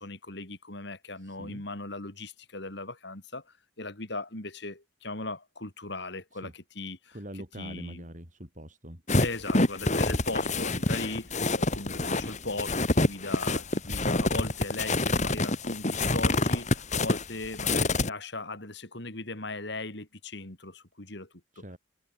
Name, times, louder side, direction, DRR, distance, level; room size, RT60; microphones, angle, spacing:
voice 1, 0.0-8.0 9.2-21.3 21.6-21.7, left 2 dB, 60° left, 3.9 m, -38 dB
voice 2, 1.2-1.6 6.4-6.5 7.1-9.0 21.5-21.8, equal, 40° right, 6.9 m, -43 dB
sound 1, 9.1-18.1, left 2 dB, 35° left, 2.6 m, -26 dB
head